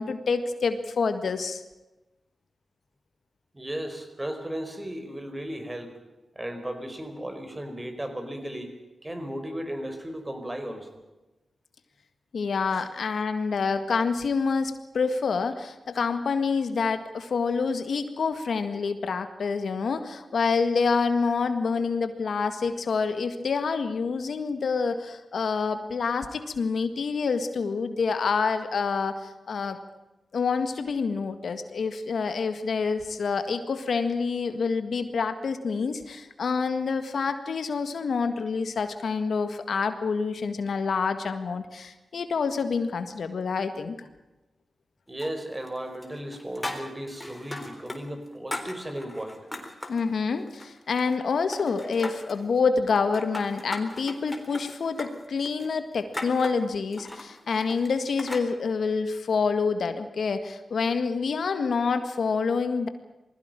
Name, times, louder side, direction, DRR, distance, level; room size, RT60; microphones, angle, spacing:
voice 1, 0.0-1.6 12.3-29.8 30.3-44.0 49.9-62.9, left 5 dB, 75° left, 9 dB, 1.8 m, -27 dB
voice 2, 3.5-5.9 6.3-8.7 9.0-11.0 12.7-12.8 45.1-49.4, right 1 dB, 20° right, 7 dB, 4.9 m, -35 dB
sound 1, 45.2-45.8 46.0-48.0 48.3-50.0 50.5-51.3 51.5-52.4 53.0-58.5, left 1 dB, 20° left, 3.9 m, -38 dB
20.5 x 16.0 x 9.1 m, 1.1 s
cardioid pair, 45°, 0 cm